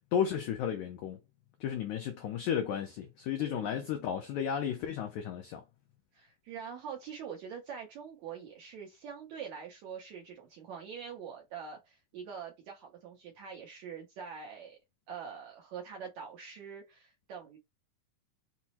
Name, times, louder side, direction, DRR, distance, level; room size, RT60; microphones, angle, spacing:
voice 1, 0.1-1.2 1.6-5.6, left 8 dB, 85° left, 1.6 m, -33 dB
voice 2, 3.4-3.9 6.1-14.8 15.1-17.6, right 7 dB, 75° right, 1.7 m, -44 dB
5.9 x 2.0 x 4.2 m
omnidirectional pair, 4.2 m